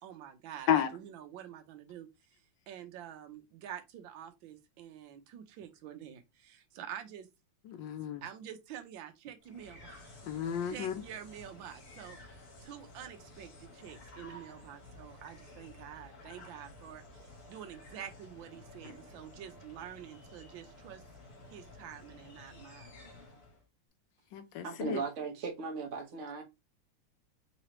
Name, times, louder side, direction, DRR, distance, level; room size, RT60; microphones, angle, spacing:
voice 1, 0.0-2.1 2.7-7.3 8.2-10.1 10.3-12.2 12.6-21.0 21.5-22.9, right 10 dB, 80° right, 1.5 m, -47 dB
voice 2, 7.7-8.2 10.3-10.9 24.3-25.0, left 9 dB, 75° left, 1.3 m, -32 dB
sound 1, 9.4-23.6, left 2 dB, 55° left, 1.6 m, -53 dB
voice 3, 24.6-26.4, right 5 dB, 50° right, 1.1 m, -37 dB
3.8 x 3.1 x 2.9 m
omnidirectional pair, 2.1 m